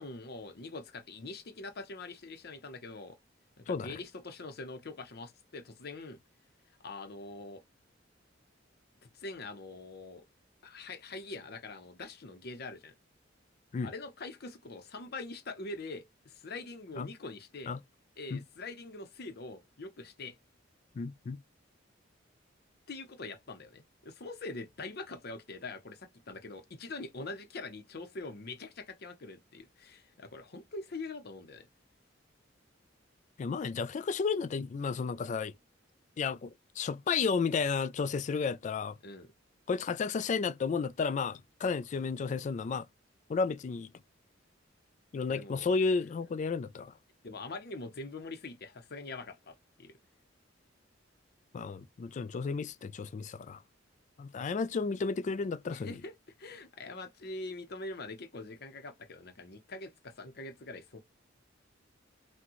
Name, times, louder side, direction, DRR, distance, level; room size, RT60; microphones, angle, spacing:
voice 1, 0.0-3.2 3.6-6.2 6.8-7.6 9.0-10.2 10.6-12.9 13.8-17.8 18.2-20.4 22.9-31.7 39.0-39.3 45.3-45.7 47.2-49.9 55.7-61.0, left 3 dB, 55° left, 0.7 m, -44 dB
voice 2, 3.7-4.0 13.7-13.9 17.0-17.1 17.7-17.8 18.3-18.4 21.0-21.4 33.4-35.5 36.2-39.0 39.7-42.9 43.3-43.9 45.1-46.9 51.5-53.6 54.2-55.9, left 5 dB, 40° left, 0.3 m, -32 dB
5.9 x 2.2 x 3.0 m
head